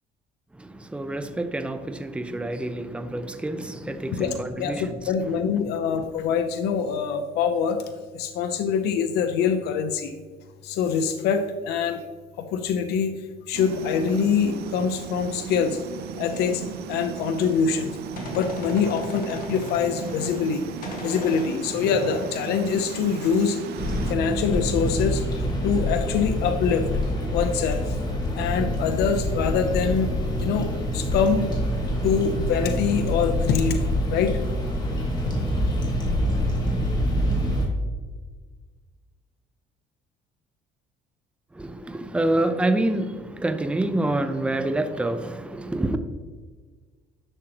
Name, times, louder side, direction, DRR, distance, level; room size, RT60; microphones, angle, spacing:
voice 1, 0.9-4.8 41.6-46.0, right 1 dB, 5° right, 8 dB, 0.6 m, -27 dB
voice 2, 3.9-7.8 8.1-10.1 10.6-12.0 12.4-13.1 13.5-15.8 16.2-17.9 18.3-20.6 21.0-23.6 24.1-25.2 25.6-26.9 27.3-28.0 28.3-30.1 30.4-30.7 30.9-31.5 32.0-34.4, left 6 dB, 80° left, 6 dB, 0.7 m, -24 dB
sound 1, 13.5-24.2, right 7 dB, 70° right, 0.7 m, -36 dB
Gunshot gunfire, 17.7-20.6 20.8-23.6, left 2 dB, 55° left, 1.8 m, -39 dB
sound 2, 23.8-37.7, equal, 25° left, 2.3 m, -26 dB
10.5 x 6.4 x 3.0 m, 1.4 s
cardioid pair, 110°, 17 cm